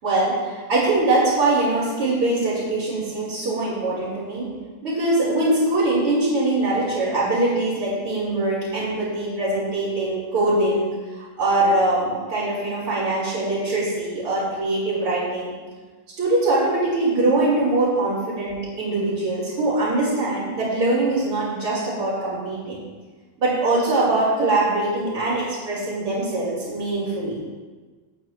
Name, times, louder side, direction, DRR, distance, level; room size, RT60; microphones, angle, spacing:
voice 1, 0.0-4.5 4.8-15.5 16.2-22.8 23.4-27.4, right 2 dB, 35° right, -10 dB, 5.0 m, -22 dB
27.0 x 9.1 x 3.0 m, 1.4 s
omnidirectional pair, 4.3 m